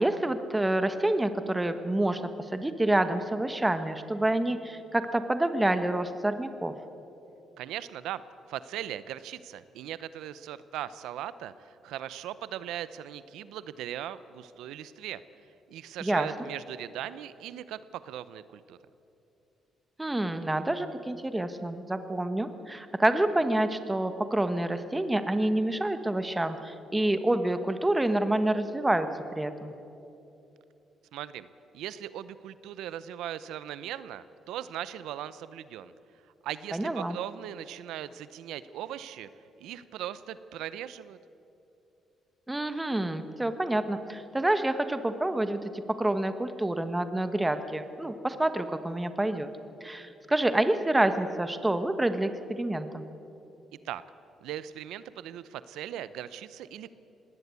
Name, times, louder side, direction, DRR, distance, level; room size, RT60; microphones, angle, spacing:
voice 1, 0.0-6.8 16.0-16.3 20.0-29.7 36.7-37.2 42.5-49.5 49.8-53.0, right 1 dB, 10° right, 9 dB, 1.2 m, -28 dB
voice 2, 7.6-8.2 8.5-15.2 15.7-18.8 31.1-31.5 31.7-35.9 36.4-39.3 39.6-41.2 53.8-54.0 54.4-56.9, right 11 dB, 90° right, 15 dB, 0.7 m, -39 dB
20.0 x 18.0 x 8.3 m, 2.8 s
cardioid pair, 90°, 0 cm